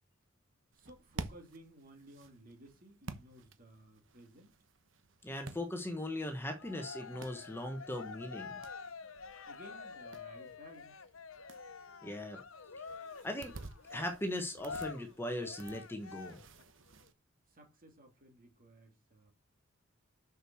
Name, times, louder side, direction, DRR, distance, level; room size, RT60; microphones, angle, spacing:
voice 1, 0.7-4.6 9.4-11.1 17.5-19.3, right 1 dB, 40° right, 2.9 m, -57 dB
sound 1, 0.7-17.1, right 3 dB, 65° right, 1.1 m, -52 dB
voice 2, 5.2-8.6 12.0-12.4 12.8-12.9 13.2-13.5 13.9-16.4, left 1 dB, 10° left, 1.3 m, -39 dB
Cheering, 6.6-16.6, left 5 dB, 75° left, 1.0 m, -48 dB
6.5 x 6.4 x 6.2 m
head